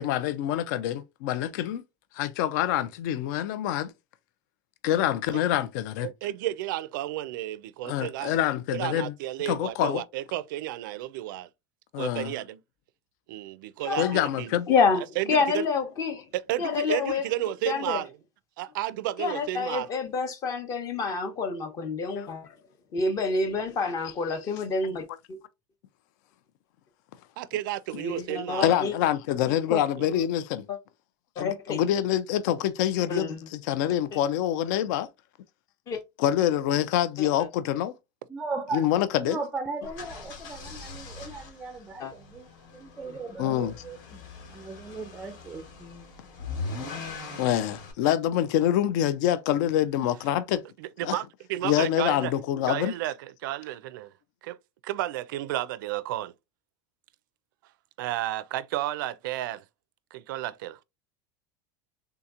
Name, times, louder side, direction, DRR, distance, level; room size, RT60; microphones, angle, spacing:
voice 1, 0.0-1.8 2.1-3.9 4.8-6.1 7.8-9.1 9.5-10.0 11.9-12.3 14.0-14.7 22.2-22.3 28.6-30.6 31.4-35.1 36.2-37.9 38.7-39.4 43.4-43.7 47.4-50.6 51.0-51.2 51.6-52.9, left 11 dB, 65° left, 0.4 m, -26 dB
voice 2, 6.0-8.4 8.7-11.5 12.0-12.6 13.3-14.6 15.2-15.6 16.3-18.1 18.6-19.9 23.5-23.6 27.4-28.7 30.0-30.2 50.8-52.3 52.7-54.1 54.4-54.6 54.8-56.3 58.0-59.6 60.1-60.8, right 14 dB, 80° right, 0.4 m, -32 dB
voice 3, 13.8-14.2 14.7-15.0 15.3-16.3 16.6-17.2 17.7-18.0 19.2-22.5 22.9-25.4 28.0-28.9 29.7-29.8 30.7-30.8 31.4-31.8 33.1-33.4 34.1-34.2 35.9-36.0 37.2-37.5 42.0-42.1, left 4 dB, 30° left, 0.8 m, -28 dB
voice 4, 38.3-38.9 39.2-44.2 44.5-46.1, right 3 dB, 10° right, 0.4 m, -37 dB
sound 1, 39.8-47.9, left 3 dB, 80° left, 1.4 m, -41 dB
3.5 x 2.8 x 2.4 m
supercardioid pair, 155°, 11 cm